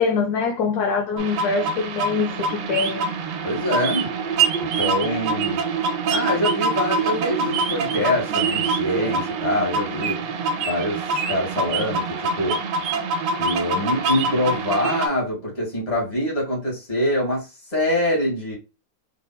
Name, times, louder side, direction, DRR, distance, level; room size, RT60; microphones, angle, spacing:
voice 1, 0.0-3.1 5.1-5.2, left 5 dB, 70° left, 1.1 m, -24 dB
sound 1, 1.2-15.1, right 4 dB, 85° right, 1.3 m, -25 dB
voice 2, 3.4-4.1 4.6-5.6 6.1-10.2 10.6-11.0 11.3-12.6 13.4-17.5 17.7-18.6, left 1 dB, 25° left, 2.0 m, -24 dB
4.1 x 3.3 x 2.2 m
omnidirectional pair, 1.9 m